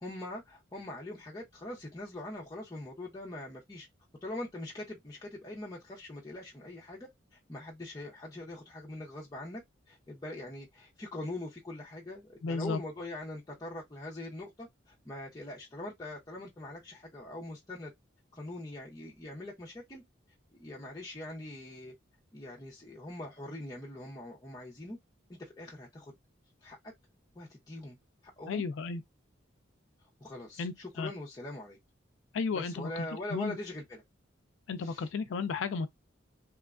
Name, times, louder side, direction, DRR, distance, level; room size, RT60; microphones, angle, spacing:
voice 1, 0.0-3.9 4.2-9.6 9.9-17.9 18.3-20.0 20.6-21.9 22.3-25.0 25.4-26.1 26.6-26.8 27.4-28.0 28.4-28.7 30.2-31.8 32.5-34.0 34.8-35.1, left 1 dB, 20° left, 0.6 m, -42 dB
voice 2, 12.4-12.8 28.5-29.0 30.6-31.1 32.3-33.6 34.7-35.9, left 4 dB, 70° left, 0.3 m, -34 dB
3.0 x 2.2 x 2.4 m
head